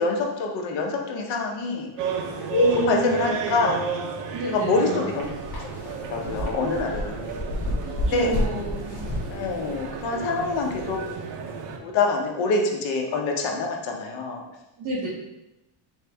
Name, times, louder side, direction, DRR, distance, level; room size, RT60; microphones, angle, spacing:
voice 1, 0.0-1.9 2.5-3.8 4.5-5.3 6.0-7.3 8.0-8.3 9.3-11.0 11.8-14.4, left 3 dB, 70° left, 2 dB, 0.9 m, -25 dB
sound 1, 2.0-11.8, right 5 dB, 70° right, 0.7 m, -33 dB
voice 2, 2.6-3.2 4.3-5.1 7.8-9.1 14.8-15.1, right 2 dB, 45° right, -7 dB, 1.0 m, -31 dB
sound 2, 5.2-11.1, left 1 dB, 40° left, 1.1 m, -31 dB
4.4 x 3.2 x 3.4 m, 0.95 s
cardioid pair, 175°, 46 cm